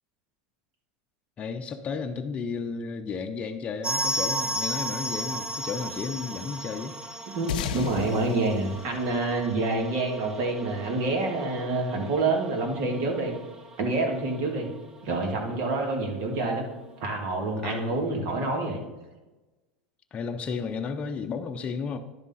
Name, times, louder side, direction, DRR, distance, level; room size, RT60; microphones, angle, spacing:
voice 1, 1.4-7.0 17.6-18.0 20.1-22.0, left 5 dB, 30° left, 4 dB, 0.7 m, -33 dB
sound 1, 3.8-14.4 14.6-14.7 15.0-15.1 15.7-15.8, right 1 dB, 20° right, 0.9 m, -35 dB
voice 2, 7.3-13.3 13.8-14.7 15.0-16.7 17.0-18.8, right 2 dB, 55° right, 2 dB, 2.0 m, -27 dB
sound 2, 7.5-10.3, left 10 dB, 85° left, 0.5 m, -36 dB
10.5 x 3.7 x 5.5 m, 1.1 s
supercardioid pair, 115°, 5 cm